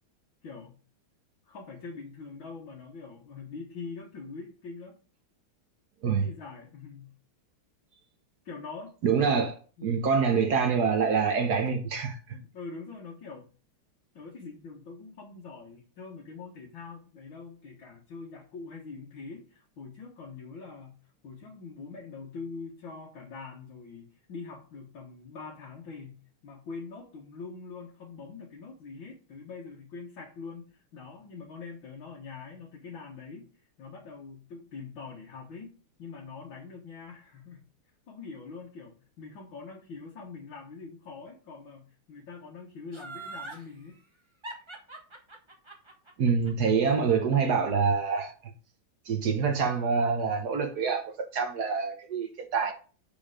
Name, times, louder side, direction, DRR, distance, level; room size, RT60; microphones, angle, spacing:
voice 1, 0.4-0.8 1.5-5.0 6.0-7.1 8.4-9.3 9.8-10.1 11.6-11.7 12.3-13.5 14.1-21.0 21.2-33.5 33.8-37.6 38.1-44.0, left 4 dB, 65° left, 2.2 m, -44 dB
voice 2, 9.0-9.5 9.8-12.2 46.2-48.5 49.0-52.7, right 5 dB, 55° right, 1.3 m, -26 dB
Laughter, 42.9-43.6 44.4-47.5 47.9-48.0, right 2 dB, 15° right, 1.1 m, -42 dB
6.8 x 5.6 x 4.9 m
omnidirectional pair, 2.3 m